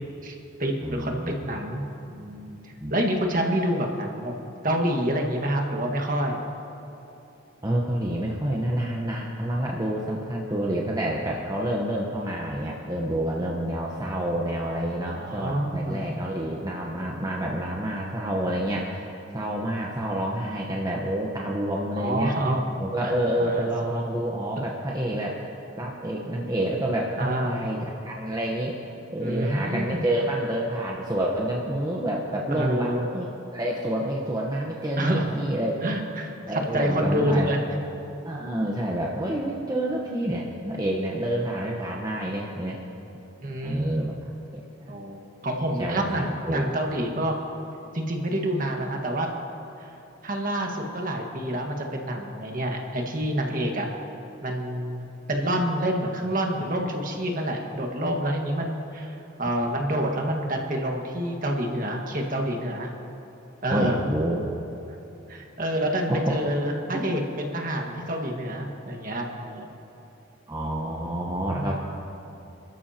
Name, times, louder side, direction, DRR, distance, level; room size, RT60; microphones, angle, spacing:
voice 1, 0.2-4.3 4.6-6.4 15.1-16.0 22.0-22.6 23.0-23.1 23.4-23.7 24.9-25.1 27.2-27.6 29.2-30.0 32.5-33.1 35.0-35.3 35.8-37.6 43.4-44.1 44.9-47.4 47.9-49.3 49.8-49.9 50.2-53.9 54.4-62.9 63.6-64.0 65.3-69.7 71.4-71.7, right 1 dB, 40° right, 1 dB, 1.6 m, -28 dB
voice 2, 0.8-1.3 2.8-2.9 7.6-22.3 22.8-25.4 25.8-28.8 29.1-33.3 33.5-35.8 36.5-37.8 38.2-42.8 43.6-45.0 45.6-46.1 46.5-46.7 63.7-64.4 66.1-66.4 66.9-67.0 70.5-71.7, right 1 dB, 20° right, -2 dB, 1.0 m, -28 dB
28.0 x 13.5 x 2.9 m, 2.9 s
head